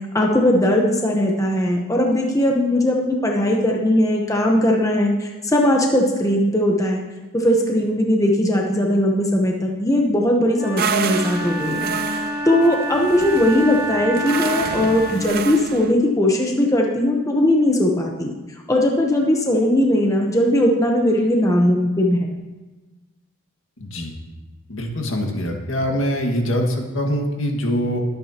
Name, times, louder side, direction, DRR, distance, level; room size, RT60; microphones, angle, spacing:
voice 1, 0.1-7.0 7.3-18.3 18.7-22.4, left 1 dB, 15° left, 0 dB, 0.9 m, -19 dB
Wind instrument woodwind instrument, 10.5-15.4, right 1 dB, 20° right, 4.5 m, -28 dB
sound 1, 10.8-15.9, right 6 dB, 45° right, 0.5 m, -29 dB
voice 2, 23.8-24.1 24.7-28.0, equal, 70° left, 1 dB, 1.9 m, -23 dB
21.5 x 8.8 x 2.9 m, 1.2 s
head